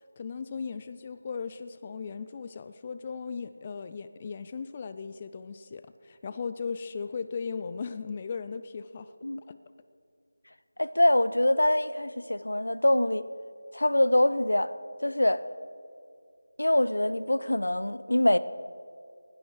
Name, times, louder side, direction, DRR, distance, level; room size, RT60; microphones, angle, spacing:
voice 1, 0.0-9.1 9.5-9.6, left 5 dB, 25° left, 0.3 m, -37 dB
voice 2, 10.8-13.2 13.7-14.7 15.0-15.4 16.6-18.4, left 1 dB, 75° left, 0.6 m, -24 dB
16.5 x 11.5 x 4.8 m
figure-of-eight pair, 165°, 0 cm